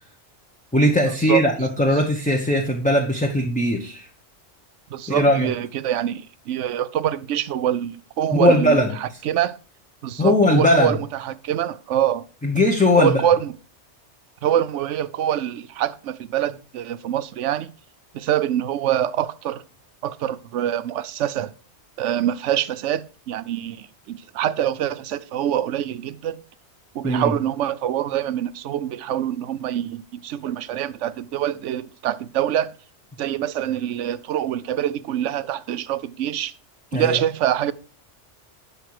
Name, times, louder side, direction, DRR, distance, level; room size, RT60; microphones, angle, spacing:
voice 1, 0.7-4.1 5.1-5.5 8.3-8.9 10.2-11.0 12.4-13.2 27.0-27.3 36.9-37.2, left 1 dB, 5° left, 1.0 m, -19 dB
voice 2, 4.9-9.6 10.0-12.2 13.0-13.5 14.4-17.7 18.1-19.6 20.0-21.5 22.0-26.4 26.9-32.7 33.2-36.5 36.9-37.7, right 11 dB, 85° right, 1.0 m, -25 dB
11.5 x 5.8 x 4.8 m
omnidirectional pair, 1.2 m